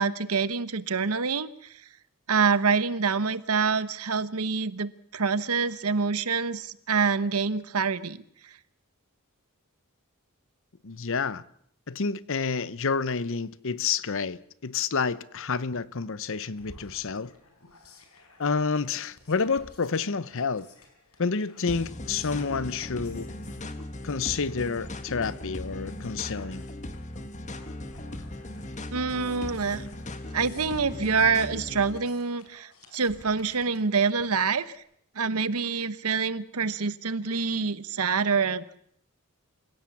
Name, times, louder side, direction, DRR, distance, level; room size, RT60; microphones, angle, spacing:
voice 1, 0.0-1.5 2.3-8.2 28.9-29.9 30.3-34.7 35.2-38.8, right 5 dB, 80° right, 1.0 m, -26 dB
voice 2, 10.8-11.4 11.9-17.3 18.4-20.7 21.2-23.3 24.0-26.7, left 5 dB, 60° left, 0.8 m, -29 dB
sound 1, 16.6-34.8, left 2 dB, 85° left, 4.4 m, -55 dB
sound 2, 21.7-32.0, left 1 dB, 35° left, 1.5 m, -38 dB
28.0 x 16.5 x 7.2 m
head